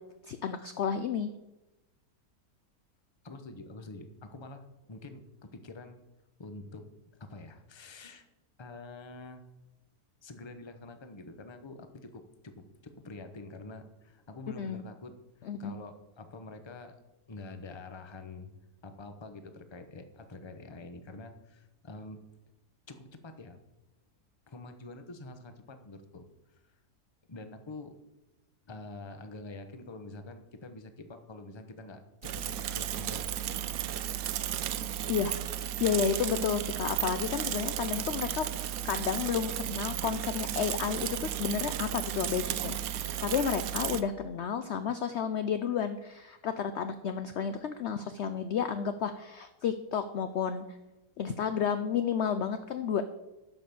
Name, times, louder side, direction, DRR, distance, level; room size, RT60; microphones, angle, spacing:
voice 1, 0.2-1.3 14.6-14.8 15.5-15.8 35.1-35.3 35.8-38.5 38.8-50.6 51.2-53.0, left 7 dB, 65° left, 10 dB, 0.7 m, -31 dB
voice 2, 3.2-6.0 6.4-6.9 7.2-8.3 8.6-9.4 10.2-15.2 15.6-16.9 17.3-18.5 18.8-22.2 22.9-23.6 24.5-26.6 27.3-28.0 28.7-33.3, left 2 dB, 25° left, 8 dB, 0.8 m, -46 dB
Bicycle / Mechanisms, 32.2-44.0, right 11 dB, 70° right, 1.0 m, -34 dB
11.5 x 5.8 x 6.9 m, 1.0 s
omnidirectional pair, 1.7 m